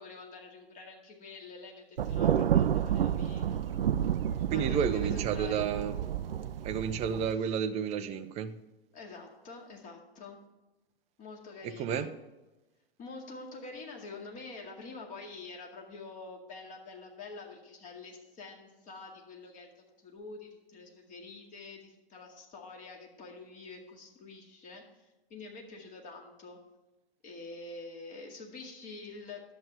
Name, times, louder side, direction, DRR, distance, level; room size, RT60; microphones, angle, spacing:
voice 1, 0.0-3.9 4.5-5.8 8.9-10.4 11.2-12.1 13.0-26.6 27.2-29.5, left 3 dB, 25° left, 1 dB, 2.1 m, -47 dB
Thunder, 2.0-7.3, right 9 dB, 70° right, 0.5 m, -30 dB
voice 2, 4.5-6.0 6.6-8.6 11.6-12.1, right 7 dB, 20° right, 12 dB, 0.6 m, -31 dB
11.0 x 7.7 x 3.4 m, 1.1 s
figure-of-eight pair, 105°, 30 cm